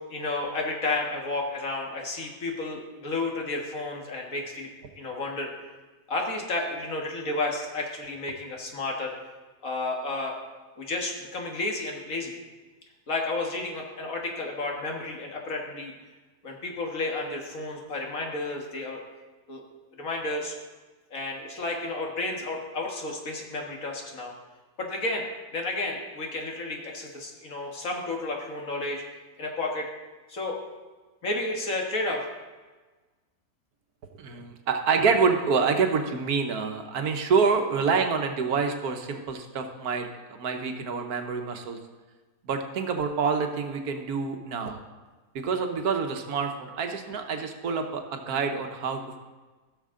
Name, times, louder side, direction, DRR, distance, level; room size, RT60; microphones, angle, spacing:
voice 1, 0.1-4.7 5.0-5.5 6.1-9.1 9.6-10.4 10.8-12.3 13.1-15.9 16.4-19.0 19.5-19.6 20.0-20.6 21.1-24.3 24.8-25.2 25.5-29.9 30.3-30.6 31.2-32.3, left 2 dB, 65° left, 0 dB, 1.9 m, -31 dB
voice 2, 34.2-41.8 42.4-44.8 45.3-49.2, right 5 dB, 80° right, 5 dB, 1.4 m, -27 dB
16.0 x 6.5 x 3.7 m, 1.3 s
omnidirectional pair, 1.6 m